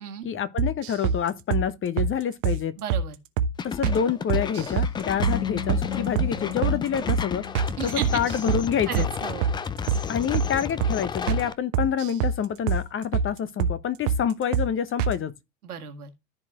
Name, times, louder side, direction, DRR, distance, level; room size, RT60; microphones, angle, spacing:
voice 1, 0.2-2.8 3.6-7.4 7.8-9.1 10.1-15.3, left 8 dB, 25° left, 1.0 m, -27 dB
sound 1, 0.6-1.2 1.5-1.7 2.0-2.1 2.4-2.6 2.9-3.1 3.4-3.5 3.8-4.0 4.3-4.9 5.2-5.4 5.7-5.9 6.2-6.3 6.6-6.8 7.1-7.2 7.5-7.7 8.0-8.6 8.9-9.1 9.4-9.6 9.9-10.0 10.3-10.5 10.8-11.0 11.3-11.4 11.7-12.4 12.7-12.8 13.1-13.3 13.6-13.8 14.1-14.2 14.5-14.7 15.0-15.2, right 6 dB, 55° right, 1.1 m, -24 dB
voice 2, 2.8-3.2 7.8-8.2 8.9-9.6 15.6-16.1, right 9 dB, 75° right, 1.8 m, -34 dB
sound 2, 3.6-11.5, left 6 dB, 10° left, 0.4 m, -33 dB
sound 3, 5.2-8.7, left 8 dB, 80° left, 3.4 m, -35 dB
14.0 x 4.7 x 3.0 m
figure-of-eight pair, 70°, 45 cm